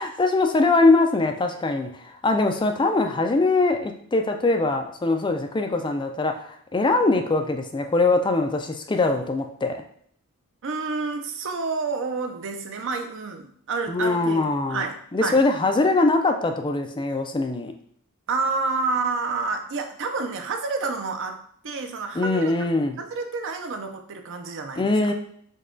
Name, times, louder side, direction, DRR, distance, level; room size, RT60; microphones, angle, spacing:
voice 1, 0.0-9.8 13.9-14.8 15.1-17.7 22.1-23.0 24.8-25.1, left 3 dB, 20° left, 4 dB, 0.4 m, -22 dB
voice 2, 10.6-15.0 15.2-15.4 18.3-22.5 23.0-24.9, right 4 dB, 60° right, 5 dB, 0.6 m, -29 dB
5.3 x 2.3 x 3.8 m, 0.64 s
head